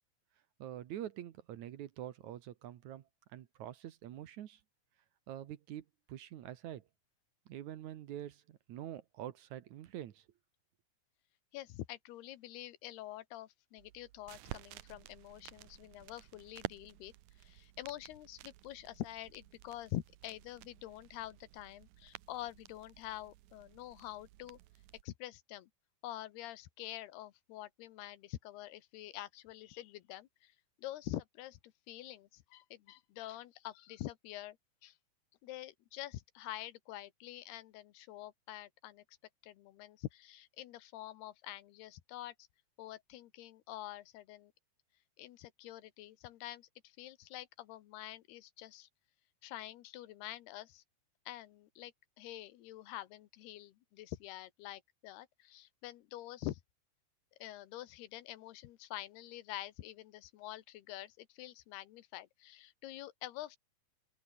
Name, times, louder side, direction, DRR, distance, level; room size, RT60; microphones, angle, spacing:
voice 1, 0.6-4.6 5.3-6.9 7.5-10.3, right 12 dB, 65° right, 2.0 m, -46 dB
voice 2, 11.5-17.1 17.4-24.6 25.0-25.7 26.0-30.5 30.8-34.6 34.8-35.0 35.4-39.2 39.4-42.3 42.8-44.5 45.2-48.9 49.4-50.8 51.3-56.6 57.4-63.6, left 15 dB, 85° left, 3.2 m, -46 dB
sound 1, 13.8-25.0, right 16 dB, 80° right, 1.7 m, -52 dB
open air
omnidirectional pair, 4.5 m